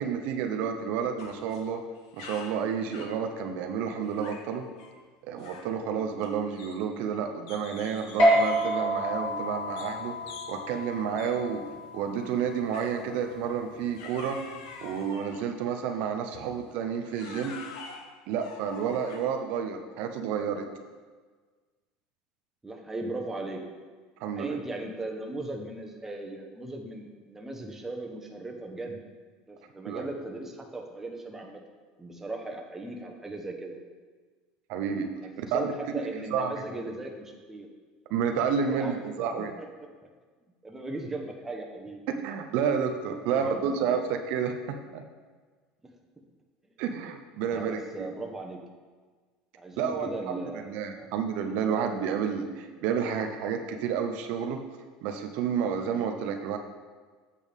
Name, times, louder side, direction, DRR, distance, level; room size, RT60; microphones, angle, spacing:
voice 1, 0.0-1.8 2.1-4.7 5.3-10.1 10.5-11.6 11.9-14.4 14.8-17.5 18.3-20.6 24.2-24.5 29.9-30.0 34.7-35.1 35.5-36.0 36.3-36.6 38.1-39.5 42.2-45.0 46.8-48.1 49.8-54.6 55.0-56.6, right 7 dB, 70° right, 5 dB, 0.7 m, -30 dB
sound 1, 1.2-1.7 2.0-3.2 4.1-4.5 4.8-5.0 5.4-5.8 6.2-7.1 7.5-8.9 9.8-10.0 10.3-10.6 11.2-11.4 12.7-13.1 14.0-15.5 16.3-16.5 17.1-19.4, left 5 dB, 85° left, 0.9 m, -46 dB
sound 2, 8.2-15.0, equal, 50° left, 2.6 m, -29 dB
voice 2, 22.6-23.6 24.3-29.0 29.5-31.6 32.0-33.8 35.2-37.7 38.6-39.0 39.6-39.7 40.6-42.0 43.3-44.0 47.5-48.6 49.6-51.1, right 2 dB, 15° right, 1 dB, 1.1 m, -38 dB
8.3 x 6.9 x 3.6 m, 1.5 s
supercardioid pair, 110°, 3 cm